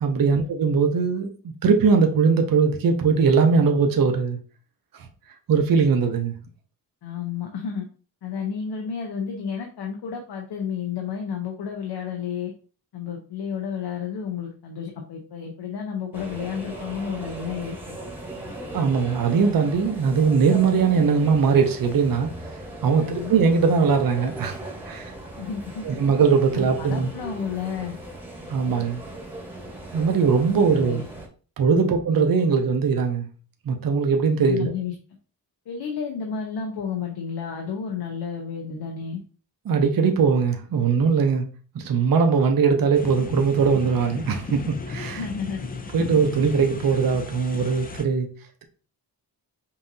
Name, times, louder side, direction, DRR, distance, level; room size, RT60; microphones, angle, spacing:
voice 1, 0.0-4.4 5.5-6.3 18.7-22.3 22.8-25.1 25.8-27.1 28.5-29.0 29.9-31.0 31.6-33.3 33.7-34.7 39.7-41.4 41.7-45.2 45.9-48.3, right 5 dB, 60° right, 0.7 m, -20 dB
voice 2, 7.0-7.9 8.2-12.5 12.9-18.0 23.0-23.3 25.4-25.8 26.5-28.0 30.6-31.0 31.7-31.9 34.5-34.9 35.7-39.2 45.1-45.7, left 7 dB, 80° left, 0.8 m, -31 dB
sound 1, 16.1-31.3, right 1 dB, 5° right, 1.0 m, -38 dB
sound 2, 42.9-48.0, left 3 dB, 25° left, 0.4 m, -35 dB
5.5 x 2.7 x 2.7 m
wide cardioid pair, 140°, 40 cm